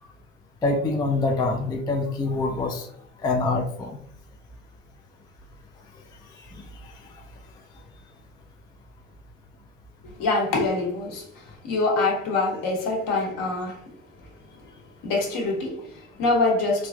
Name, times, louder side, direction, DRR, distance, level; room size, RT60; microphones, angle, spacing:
voice 1, 0.6-2.9 3.2-4.0, left 3 dB, 10° left, 0.3 m, -25 dB
voice 2, 10.0-13.8 15.0-16.9, left 3 dB, 55° left, 1.0 m, -25 dB
3.1 x 2.4 x 2.2 m
hypercardioid pair, 60°, 39 cm